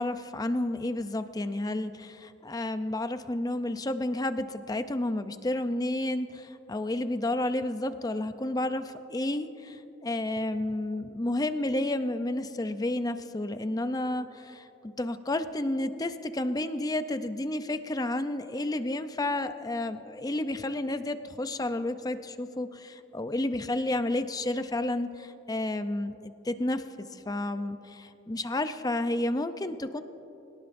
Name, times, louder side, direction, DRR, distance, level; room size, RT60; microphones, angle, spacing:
voice 1, 0.0-30.0, left 1 dB, 20° left, 10 dB, 0.5 m, -31 dB
26.5 x 18.0 x 2.6 m, 2.9 s
head